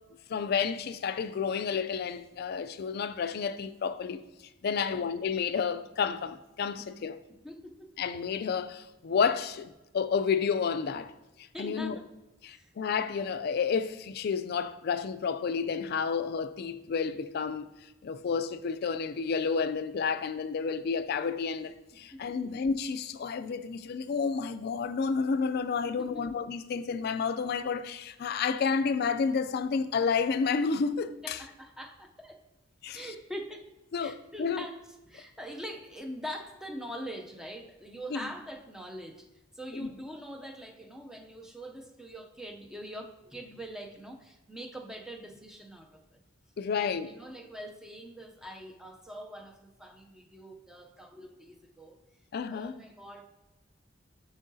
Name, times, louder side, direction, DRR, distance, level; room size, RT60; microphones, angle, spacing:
voice 1, 0.3-4.2 4.6-7.2 8.0-11.1 11.6-12.0 12.4-17.7 18.0-31.4 32.8-33.1 33.9-34.6 38.1-38.3 39.8-39.9 46.6-47.2 52.3-52.8, left 5 dB, 55° left, 0.3 m, -30 dB
voice 2, 4.7-5.1 6.8-6.9 7.4-7.9 11.5-12.1 12.4-12.7 22.1-22.4 25.8-26.2 31.2-32.4 32.9-33.7 34.0-39.3 39.5-46.2 46.7-52.0 52.5-53.2, equal, 5° right, 0.5 m, -43 dB
7.5 x 6.2 x 2.7 m
head